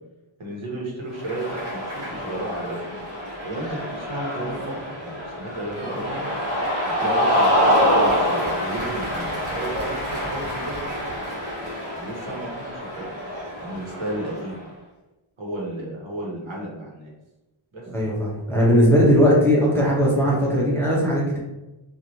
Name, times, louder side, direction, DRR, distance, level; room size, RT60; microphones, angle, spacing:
voice 1, 0.4-2.9 3.4-6.3 6.9-11.2 11.9-13.1 13.6-14.6 15.4-17.1 17.7-17.9, right 1 dB, 75° right, -3 dB, 1.1 m, -33 dB
Cheering, 1.1-14.6, equal, 30° right, 1.5 m, -26 dB
voice 2, 17.9-21.4, equal, 5° left, -6 dB, 0.7 m, -18 dB
3.0 x 2.5 x 2.7 m, 1.0 s
wide cardioid pair, 135°, 48 cm